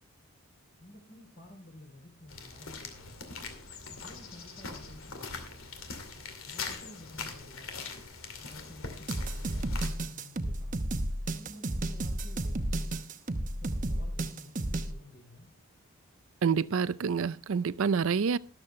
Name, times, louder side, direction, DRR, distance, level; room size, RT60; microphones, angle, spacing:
voice 1, 0.8-3.2 3.9-5.6 6.4-7.9 8.4-10.9 11.3-13.0 13.4-15.5, left 1 dB, 50° left, 3.3 m, -51 dB
sound 1, 2.3-9.9, left 4 dB, 75° left, 2.5 m, -42 dB
sound 2, 9.1-14.9, right 1 dB, 40° right, 0.9 m, -32 dB
voice 2, 16.4-18.4, right 6 dB, 70° right, 0.4 m, -27 dB
13.0 x 12.5 x 3.2 m
head